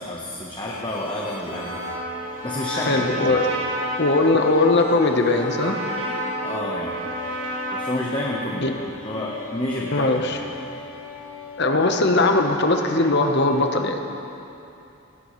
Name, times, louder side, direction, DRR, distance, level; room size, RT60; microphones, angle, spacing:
voice 1, 0.0-1.8 2.4-3.1 6.4-7.0 7.7-8.7 9.0-10.3, left 1 dB, 20° left, -3 dB, 1.1 m, -29 dB
sound 1, 0.7-13.8, left 1 dB, 75° left, 1.5 m, -37 dB
Trumpet, 1.5-8.6, right 1 dB, 60° right, 1.8 m, -31 dB
voice 2, 2.7-3.5 4.0-5.7 8.6-8.7 9.9-10.4 11.6-14.0, left 2 dB, 50° left, 4 dB, 1.0 m, -20 dB
18.5 x 17.0 x 3.2 m, 2.9 s
head